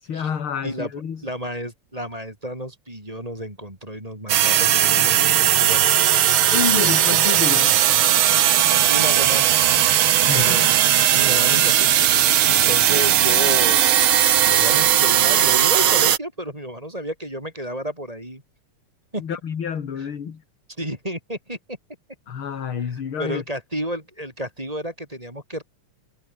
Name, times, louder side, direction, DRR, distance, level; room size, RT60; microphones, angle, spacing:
voice 1, 0.0-1.2 6.5-7.8 10.1-10.7 19.2-20.4 22.3-23.4, left 7 dB, 45° left, 2.7 m, -28 dB
voice 2, 1.2-5.9 8.9-9.5 10.3-10.7 11.1-13.8 14.4-18.4 19.1-19.2 20.0-20.1 20.7-21.8 22.8-25.6, right 1 dB, 10° right, 6.7 m, -31 dB
sound 1, 4.3-16.2, right 11 dB, 60° right, 1.5 m, -17 dB
omnidirectional pair, 3.6 m